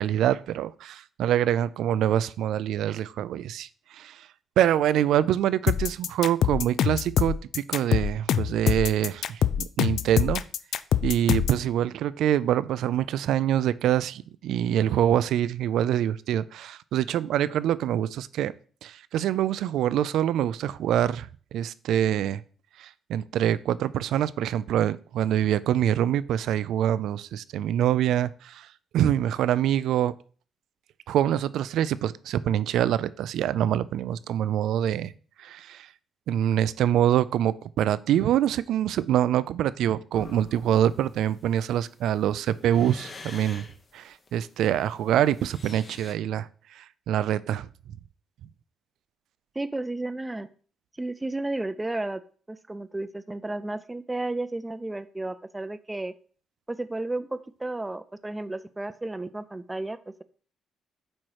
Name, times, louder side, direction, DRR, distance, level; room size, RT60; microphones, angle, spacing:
voice 1, 0.0-4.3 4.6-10.4 11.0-18.5 18.8-22.4 22.8-28.7 28.9-30.1 31.1-35.1 35.4-35.9 36.3-43.6 43.9-46.5 46.8-47.7, right 11 dB, 80° right, 17 dB, 0.3 m, -25 dB
sound 1, 5.7-11.6, left 9 dB, 70° left, 0.4 m, -24 dB
sound 2, 40.1-46.1, left 4 dB, 40° left, 0.9 m, -46 dB
voice 2, 49.6-50.5 51.0-52.2 52.5-56.1 56.7-60.2, right 2 dB, 15° right, 12 dB, 0.4 m, -33 dB
8.6 x 3.1 x 4.7 m, 0.42 s
cardioid pair, 90°, 0 cm